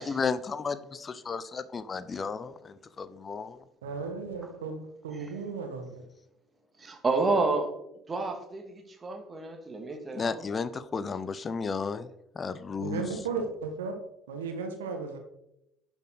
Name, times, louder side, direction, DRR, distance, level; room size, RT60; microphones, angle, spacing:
voice 1, 0.0-3.6 10.1-12.1 12.3-13.0, left 5 dB, 30° left, 0.6 m, -33 dB
voice 2, 3.8-6.0 12.8-14.0 14.3-15.2, right 4 dB, 75° right, 1.4 m, -35 dB
voice 3, 6.8-7.7 8.1-10.4, right 3 dB, 25° right, 2.1 m, -30 dB
11.0 x 7.1 x 4.0 m
figure-of-eight pair, 60°, 0 cm